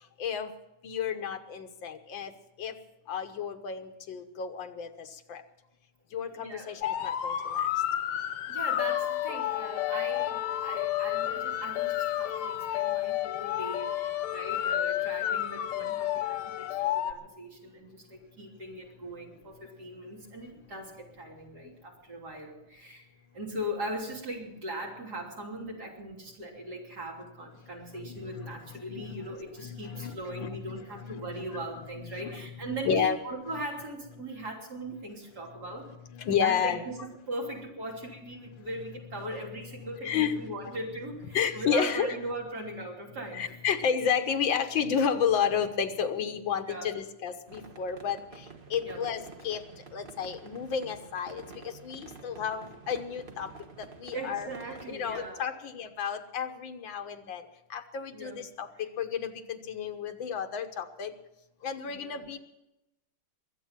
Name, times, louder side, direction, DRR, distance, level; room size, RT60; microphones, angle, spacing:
voice 1, 0.2-0.5 0.8-2.3 2.6-2.8 3.1-5.4 6.1-7.7 28.0-31.6 32.0-32.5 32.9-33.2 36.1-36.8 39.8-40.5 41.3-42.2 43.3-53.5 53.8-54.5 54.9-61.1 61.6-62.4, left 7 dB, 70° left, 7 dB, 1.8 m, -32 dB
voice 2, 6.4-6.8 8.5-23.1 23.3-35.9 36.4-43.6 46.7-46.9 48.8-49.0 54.1-55.6 58.1-58.4 61.8-62.2, right 1 dB, 50° right, -1 dB, 3.8 m, -39 dB
sound 1, 6.8-17.1, left 12 dB, 90° left, 1.7 m, -30 dB
sound 2, 47.5-55.3, right 4 dB, 30° right, 1.1 m, -49 dB
22.5 x 8.3 x 7.4 m, 0.92 s
omnidirectional pair, 2.3 m